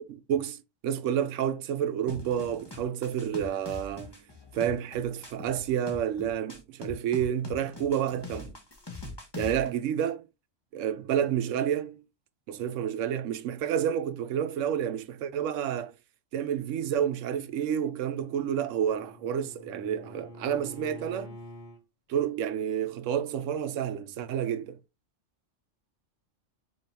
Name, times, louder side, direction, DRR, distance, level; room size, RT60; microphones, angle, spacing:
voice 1, 0.1-4.2 4.5-8.5 9.4-10.3 10.7-12.0 12.5-15.9 16.3-21.4 22.1-24.8, right 9 dB, 75° right, 0.9 m, -30 dB
sound 1, 2.1-9.7, left 3 dB, 20° left, 1.1 m, -42 dB
Bowed string instrument, 18.0-21.8, left 1 dB, 45° left, 1.2 m, -47 dB
5.1 x 3.8 x 2.8 m
omnidirectional pair, 1.3 m